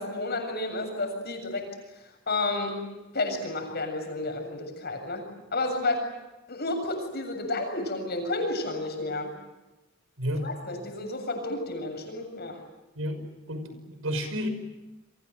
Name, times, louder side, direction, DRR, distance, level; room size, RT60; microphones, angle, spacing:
voice 1, 0.0-1.7 2.0-2.8 3.1-5.2 5.5-6.0 6.5-9.3 10.4-12.6, left 2 dB, 55° left, 5 dB, 7.4 m, -31 dB
voice 2, 13.5-14.5, equal, 85° right, 9 dB, 5.8 m, -31 dB
29.5 x 24.0 x 7.7 m, 1.0 s
head